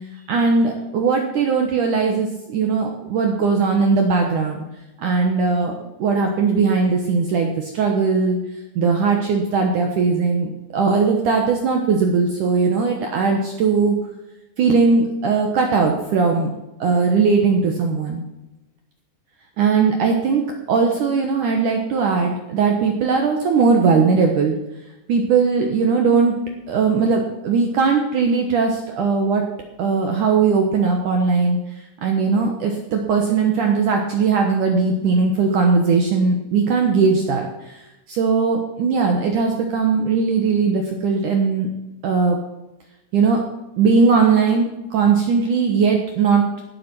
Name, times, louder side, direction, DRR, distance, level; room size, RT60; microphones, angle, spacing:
voice 1, 0.3-4.7 5.0-5.7 6.0-8.4 8.8-14.0 14.6-16.5 16.8-18.2 19.6-24.6 25.1-26.4 26.7-29.4 29.8-31.6 32.0-41.7 42.0-42.4 43.1-43.4 43.8-46.5, right 5 dB, 65° right, 2 dB, 2.1 m, -19 dB
17.0 x 7.6 x 6.1 m, 0.98 s
omnidirectional pair, 5.0 m